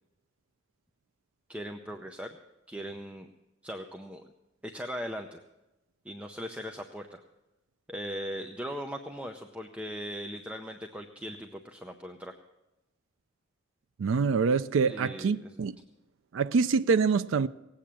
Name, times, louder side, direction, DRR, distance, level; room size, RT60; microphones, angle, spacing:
voice 1, 1.5-2.4 2.7-3.3 3.6-4.2 4.6-5.4 6.0-7.2 7.9-12.3 14.8-15.6, equal, 5° right, 0.6 m, -39 dB
voice 2, 14.0-15.7 16.3-17.5, right 5 dB, 80° right, 0.4 m, -25 dB
18.0 x 8.6 x 7.4 m
head